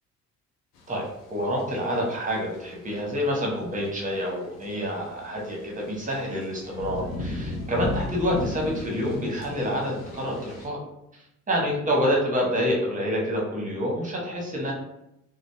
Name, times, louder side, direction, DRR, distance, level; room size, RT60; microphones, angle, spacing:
sound 1, 0.7-10.7, left 2 dB, 75° left, 0.6 m, -37 dB
voice 1, 1.3-10.8 11.5-14.7, equal, 15° right, -2 dB, 1.1 m, -27 dB
3.9 x 2.0 x 2.2 m, 0.84 s
figure-of-eight pair, 40°, 47 cm